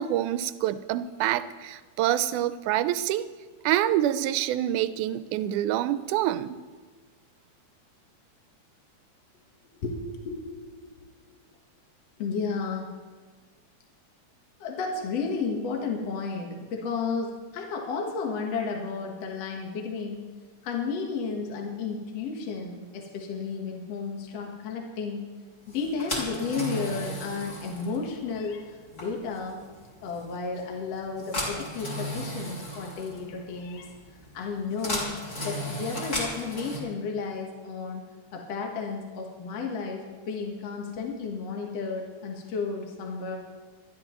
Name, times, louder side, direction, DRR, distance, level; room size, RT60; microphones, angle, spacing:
voice 1, 0.0-3.2 3.6-6.6, right 12 dB, 90° right, 13 dB, 2.1 m, -26 dB
voice 2, 9.8-11.0 11.3-11.4 12.2-13.0 14.6-20.3 20.6-25.3 25.7-29.6 30.0-33.9 34.3-35.1 35.4-38.0 38.3-43.4, left 4 dB, 60° left, 1 dB, 2.3 m, -33 dB
sound 1, 25.7-36.8, equal, 30° left, 3.3 m, -36 dB
25.0 x 11.0 x 3.0 m, 1.4 s
omnidirectional pair, 3.5 m